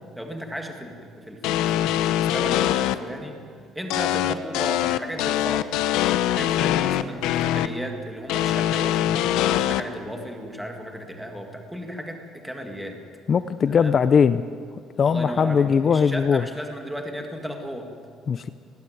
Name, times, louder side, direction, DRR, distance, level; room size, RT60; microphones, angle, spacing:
voice 1, 0.1-5.8 6.2-13.0 13.7-14.0 15.0-17.9, equal, ahead, 3 dB, 1.8 m, -35 dB
sound 1, 1.4-2.9 3.9-7.7 8.3-9.8, left 12 dB, 80° left, 0.8 m, -23 dB
voice 2, 13.3-14.4 15.0-16.4 18.3-18.5, left 6 dB, 30° left, 12 dB, 0.5 m, -20 dB
19.0 x 16.0 x 9.3 m, 2.2 s
cardioid pair, 170°, 0 cm